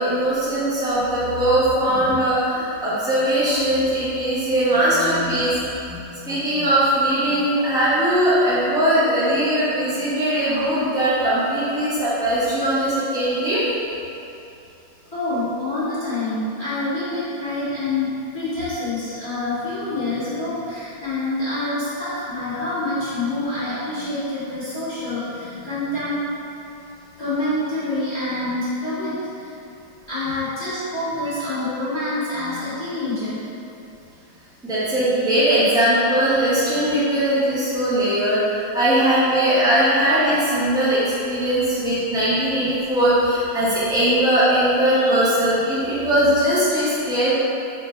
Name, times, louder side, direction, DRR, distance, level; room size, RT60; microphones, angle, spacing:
voice 1, 0.0-5.6 5.9-13.6 34.6-47.3, right 1 dB, 5° right, -11 dB, 0.7 m, -20 dB
voice 2, 15.1-26.4 27.2-29.5 30.1-33.5, left 2 dB, 15° left, -13 dB, 1.3 m, -26 dB
4.5 x 2.5 x 4.3 m, 2.8 s
omnidirectional pair, 2.0 m